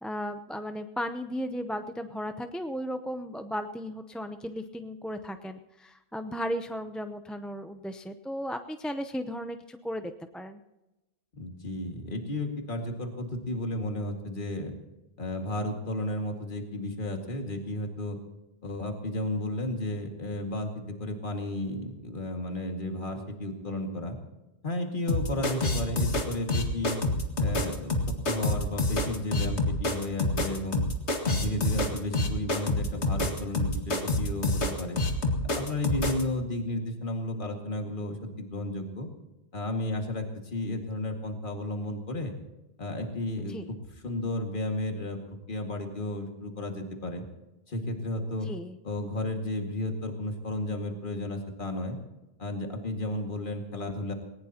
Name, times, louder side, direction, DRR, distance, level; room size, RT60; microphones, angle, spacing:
voice 1, 0.0-10.6 43.5-43.7 48.3-48.8, equal, ahead, 7 dB, 0.4 m, -35 dB
voice 2, 11.3-14.7 15.2-18.2 18.6-24.2 24.6-27.0 27.4-30.8 31.2-35.0 35.4-39.1 39.5-42.3 42.8-47.2 47.7-48.5 48.8-52.0 52.4-54.1, left 1 dB, 50° left, 3 dB, 2.2 m, -33 dB
sound 1, 25.1-36.2, left 2 dB, 85° left, 2.2 m, -27 dB
20.0 x 19.0 x 2.9 m, 0.99 s
omnidirectional pair, 1.1 m